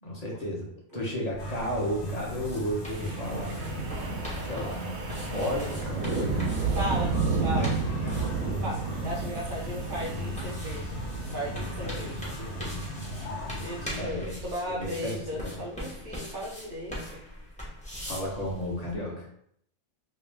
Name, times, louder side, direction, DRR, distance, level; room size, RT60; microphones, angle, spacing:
voice 1, 0.0-3.6 3.9-4.9 5.3-7.7 8.0-9.0 11.8-13.4 13.9-15.6 18.0-19.3, equal, 30° left, -3 dB, 1.0 m, -34 dB
sound 1, 1.3-18.9, equal, 5° left, 0.8 m, -42 dB
sound 2, 1.4-13.9, left 1 dB, 75° left, 1.3 m, -38 dB
Wind, 2.9-13.1, right 4 dB, 80° right, 1.1 m, -32 dB
voice 2, 6.7-7.1 7.4-7.7 8.6-11.0 11.3-12.3 13.6-17.2, equal, 45° right, -2 dB, 0.8 m, -36 dB
3.0 x 3.0 x 3.4 m, 0.68 s
omnidirectional pair, 1.5 m